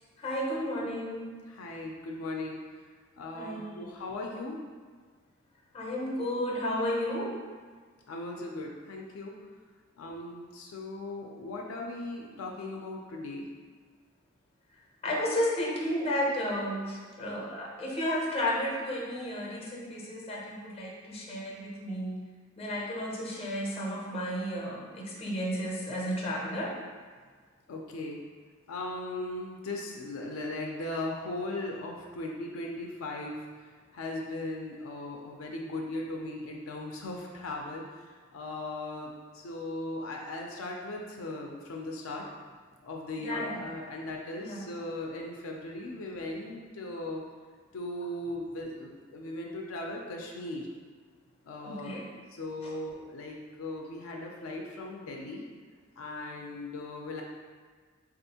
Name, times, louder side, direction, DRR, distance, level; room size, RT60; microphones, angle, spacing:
voice 1, 0.2-1.3 3.3-3.8 5.7-7.4 15.0-22.2 22.6-26.7 43.2-43.6 44.4-44.7 51.6-52.1 52.6-52.7, equal, 30° left, -3 dB, 0.5 m, -32 dB
voice 2, 1.5-2.6 3.2-4.7 8.1-9.4 10.0-13.5 27.7-28.2 28.7-33.4 33.9-37.8 38.3-42.2 42.8-47.2 47.7-50.7 51.4-52.0 52.4-55.4 56.0-57.2, left 2 dB, 80° left, 0 dB, 0.4 m, -38 dB
3.4 x 2.5 x 2.7 m, 1.6 s
head